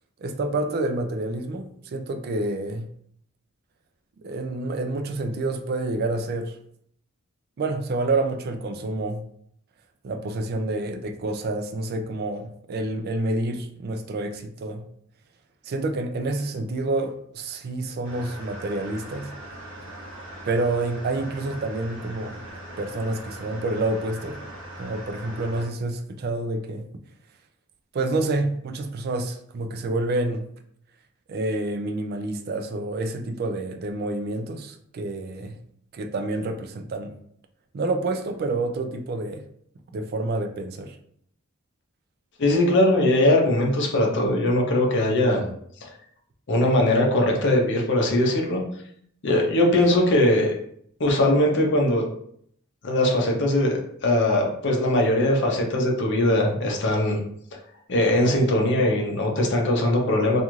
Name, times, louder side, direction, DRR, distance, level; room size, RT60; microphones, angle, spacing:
voice 1, 0.2-2.9 4.2-6.6 7.6-9.2 10.0-14.8 15.6-19.3 20.5-22.4 22.8-24.4 24.8-26.9 27.9-30.5 31.3-35.6 35.9-37.1 37.7-39.4 39.9-41.0, right 2 dB, 45° right, 0.3 m, -28 dB
sound 1, 18.0-25.7, right 1 dB, 70° right, 1.0 m, -40 dB
voice 2, 42.4-45.5 46.5-48.6 49.2-50.5 51.0-52.0 52.8-53.7 54.0-57.2 57.9-60.4, left 1 dB, 55° left, 0.6 m, -20 dB
2.5 x 2.4 x 3.0 m
head